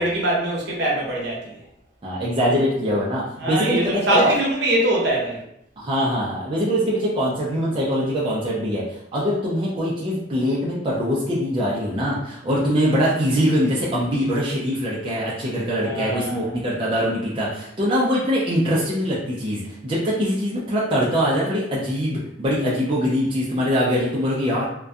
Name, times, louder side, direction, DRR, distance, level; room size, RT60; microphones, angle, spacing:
voice 1, 0.0-1.4 3.4-5.4 15.8-16.5, right 1 dB, 65° right, -3 dB, 0.8 m, -22 dB
voice 2, 2.0-4.4 5.8-8.9 9.1-24.6, equal, 30° right, -6 dB, 0.4 m, -23 dB
2.5 x 2.2 x 2.3 m, 0.78 s
head